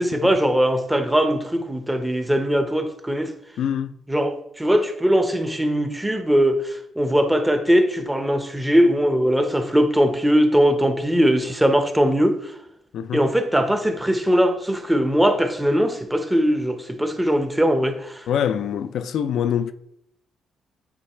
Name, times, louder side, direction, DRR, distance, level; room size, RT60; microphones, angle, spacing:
voice 1, 0.0-3.3 4.1-12.4 13.1-18.2, equal, 10° right, 0.8 m, -20 dB
voice 2, 3.6-4.0 12.9-13.3 18.3-19.7, left 9 dB, 70° left, 0.4 m, -24 dB
8.5 x 2.9 x 4.3 m
cardioid pair, 90°, 0 cm